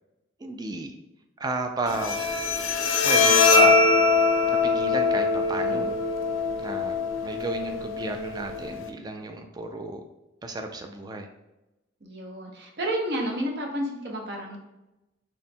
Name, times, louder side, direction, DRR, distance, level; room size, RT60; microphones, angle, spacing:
voice 1, 0.4-0.9 1.4-2.2 3.0-3.8 4.6-6.0 6.6-10.0 10.4-11.3, right 2 dB, 20° right, 4 dB, 0.3 m, -32 dB
Bowed string instrument, 1.9-8.9, left 4 dB, 80° left, 0.4 m, -22 dB
voice 2, 5.5-5.9 12.0-14.6, right 1 dB, 55° right, 1 dB, 0.7 m, -31 dB
4.1 x 3.6 x 2.2 m, 0.96 s
head